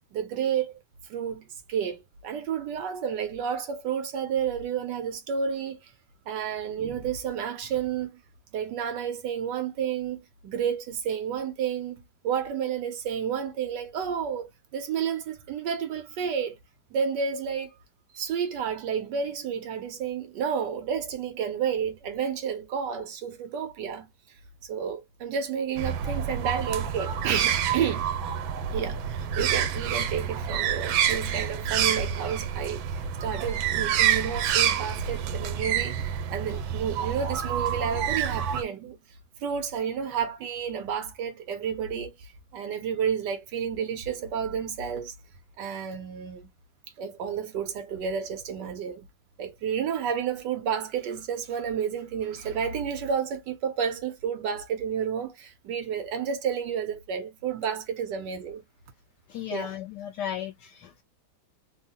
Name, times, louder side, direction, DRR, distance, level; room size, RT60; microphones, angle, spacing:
voice 1, 0.1-0.8 1.1-5.9 6.3-8.2 8.5-16.6 16.9-17.7 18.1-24.1 24.7-28.0 28.7-36.0 36.3-39.0 39.4-45.1 45.6-46.5 47.0-49.1 49.4-58.6 59.5-59.7, right 7 dB, 70° right, 1.1 m, -31 dB
sound 1, 25.8-38.6, right 9 dB, 85° right, 1.4 m, -28 dB
voice 2, 59.3-61.0, left 9 dB, 75° left, 1.0 m, -35 dB
3.5 x 2.0 x 2.7 m
omnidirectional pair, 2.2 m